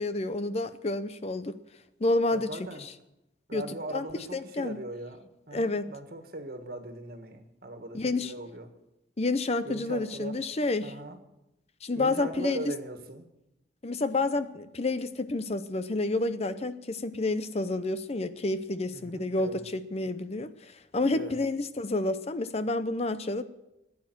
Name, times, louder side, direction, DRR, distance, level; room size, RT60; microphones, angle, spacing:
voice 1, 0.0-1.6 2.0-2.5 2.8-2.9 3.5-3.6 3.9-4.1 4.3-4.8 5.5-5.9 7.9-8.3 9.2-10.9 11.8-12.6 13.8-20.5 20.9-23.4, left 2 dB, 35° left, 12 dB, 0.7 m, -29 dB
voice 2, 2.3-2.9 3.5-8.7 9.6-10.4 10.8-11.2 11.9-13.3 18.9-19.6 21.1-21.4, right 1 dB, 55° right, 6 dB, 1.7 m, -40 dB
15.0 x 9.5 x 7.8 m, 0.91 s
head